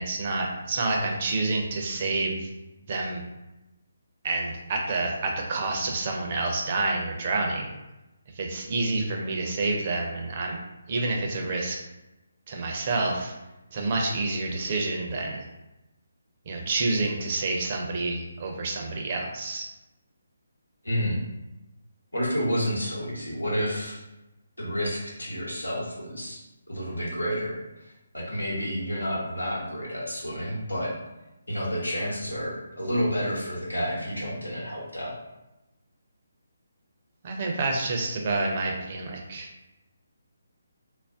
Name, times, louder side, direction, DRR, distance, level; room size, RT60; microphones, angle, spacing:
voice 1, 0.0-2.5 2.9-3.2 4.2-7.7 8.4-10.6 10.9-11.8 12.5-13.3 13.7-15.4 16.5-19.7 37.2-39.5, right 3 dB, 40° right, 1 dB, 0.5 m, -28 dB
voice 2, 20.8-21.2 22.1-24.0 24.6-26.4 26.7-30.9 31.5-35.1, equal, 85° left, -5 dB, 1.1 m, -30 dB
2.4 x 2.1 x 3.5 m, 0.98 s
figure-of-eight pair, 145°, 0 cm